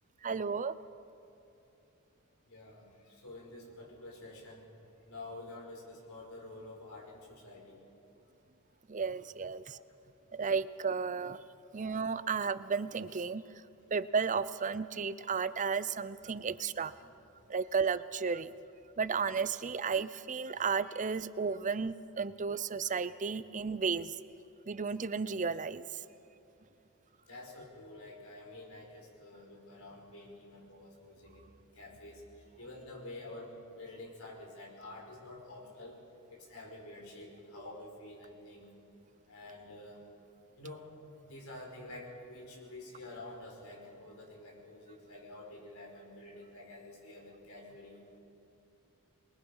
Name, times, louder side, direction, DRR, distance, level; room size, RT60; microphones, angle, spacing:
voice 1, 0.2-0.7 8.9-9.8 10.3-11.4 11.7-13.4 13.9-16.9 17.5-18.5 19.0-24.1 24.7-25.9, right 5 dB, 35° right, 15 dB, 0.6 m, -33 dB
voice 2, 2.5-4.6 5.1-7.8 17.0-17.2 27.3-31.5 31.7-32.2 32.6-36.0 36.3-38.7 39.3-40.0 40.6-40.8 41.3-48.0, left 2 dB, 70° left, -1 dB, 5.3 m, -49 dB
27.0 x 22.0 x 5.6 m, 2.9 s
head